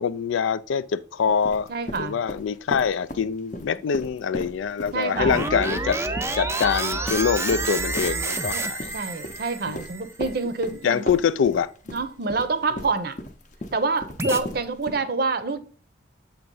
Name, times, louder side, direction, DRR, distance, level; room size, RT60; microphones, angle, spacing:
voice 1, 0.0-1.7 2.0-6.0 6.4-8.9 9.7-9.8 10.8-11.7, left 6 dB, 85° left, 0.4 m, -24 dB
sound 1, 1.3-3.2 3.5-10.8 11.1-15.0, left 1 dB, 40° left, 0.7 m, -36 dB
voice 2, 1.7-2.1 4.9-5.5 6.9-7.0 8.5-8.7 8.9-11.1 11.9-13.2 13.7-15.6, right 3 dB, 50° right, 0.6 m, -27 dB
sound 2, 5.2-10.4 14.2-14.4, right 3 dB, 15° right, 0.4 m, -29 dB
7.4 x 2.9 x 5.3 m
head